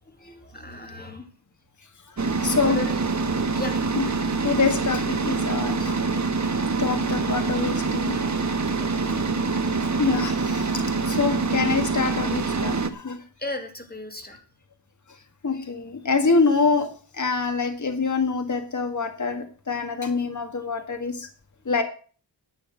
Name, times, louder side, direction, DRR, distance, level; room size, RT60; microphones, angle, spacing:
voice 1, 0.0-1.3 2.7-3.3 3.6-3.8 4.1-4.3 6.4-6.5 8.8-9.4 13.4-14.4, left 2 dB, 20° left, 5 dB, 2.5 m, -37 dB
sound 1, 2.2-12.9, right 4 dB, 40° right, 1.4 m, -25 dB
voice 2, 2.4-2.8 4.0-4.1 4.4-6.0 6.8-8.2 10.0-13.2 15.4-21.3 21.7-21.8, left 4 dB, 40° left, 7 dB, 1.7 m, -25 dB
11.0 x 7.6 x 7.7 m, 0.40 s
wide cardioid pair, 105°, 43 cm